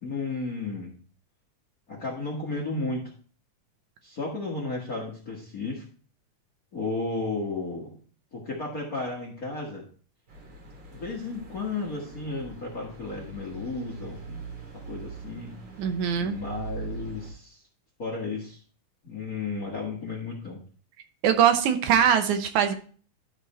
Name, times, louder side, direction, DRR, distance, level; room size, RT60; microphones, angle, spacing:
voice 1, 0.0-1.0 1.9-3.1 4.0-5.8 6.7-8.0 8.3-9.8 10.9-14.4 14.8-15.6 16.1-17.6 18.0-18.6 19.0-20.6, left 3 dB, 40° left, -1 dB, 1.3 m, -33 dB
sound 1, 10.3-17.3, right 4 dB, 60° right, 3.6 m, -42 dB
voice 2, 15.8-16.4 21.2-22.7, right 8 dB, 80° right, 7 dB, 2.3 m, -22 dB
12.5 x 4.1 x 4.2 m, 0.42 s
omnidirectional pair, 3.5 m